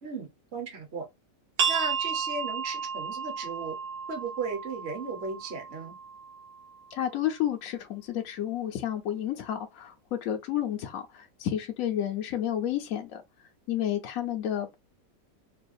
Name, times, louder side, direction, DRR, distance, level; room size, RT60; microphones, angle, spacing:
voice 1, 0.0-1.0 1.7-3.8 4.1-5.9, right 4 dB, 45° right, 1.1 m, -36 dB
sound 1, 1.6-7.0, right 6 dB, 60° right, 1.6 m, -33 dB
voice 2, 6.9-13.2 13.7-14.8, left 11 dB, 65° left, 0.9 m, -31 dB
4.8 x 2.3 x 2.6 m
omnidirectional pair, 1.9 m